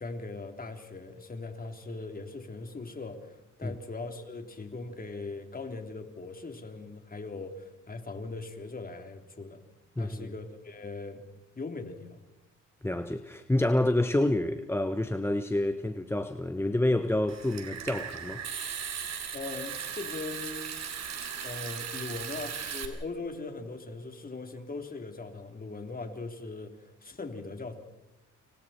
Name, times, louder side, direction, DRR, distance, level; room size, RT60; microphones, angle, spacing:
voice 1, 0.0-9.6 10.0-11.2 11.6-12.2 19.3-20.8 21.4-27.7, left 3 dB, 30° left, 3.5 m, -40 dB
voice 2, 10.0-10.3 12.8-18.4, left 1 dB, 10° left, 1.0 m, -28 dB
Water tap faucet / Sink (filling or washing) / Trickle dribble, 17.3-22.9, right 7 dB, 60° right, 3.5 m, -37 dB
29.5 x 25.5 x 4.4 m
cardioid pair, 90°, 30 cm